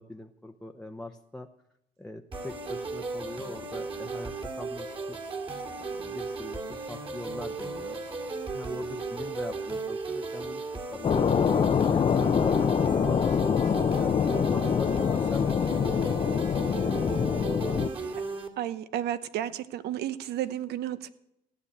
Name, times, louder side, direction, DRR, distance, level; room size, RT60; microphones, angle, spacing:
voice 1, 0.0-1.5 2.0-5.2 5.8-11.4 11.8-12.8 13.0-18.2, left 2 dB, 5° left, 5 dB, 0.8 m, -43 dB
sound 1, 2.3-18.5, right 3 dB, 30° right, 2.4 m, -36 dB
sound 2, 11.0-17.9, left 7 dB, 35° left, 0.6 m, -25 dB
voice 2, 18.6-21.1, right 11 dB, 75° right, 14 dB, 1.0 m, -32 dB
15.5 x 9.6 x 8.6 m, 0.83 s
cardioid pair, 110°, 17 cm